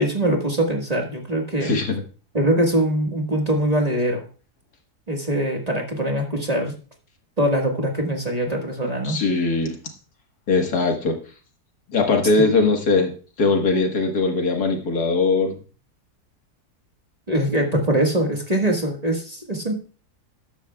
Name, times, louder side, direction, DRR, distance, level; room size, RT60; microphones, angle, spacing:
voice 1, 0.0-1.8 2.3-4.3 5.1-6.7 7.4-9.2 12.4-12.5 17.3-19.8, right 1 dB, 25° right, 1 dB, 1.6 m, -22 dB
voice 2, 1.6-2.0 9.0-9.8 10.5-11.2 11.9-15.6, left 3 dB, 70° left, 3 dB, 2.1 m, -20 dB
13.0 x 10.5 x 2.3 m, 0.37 s
omnidirectional pair, 1.7 m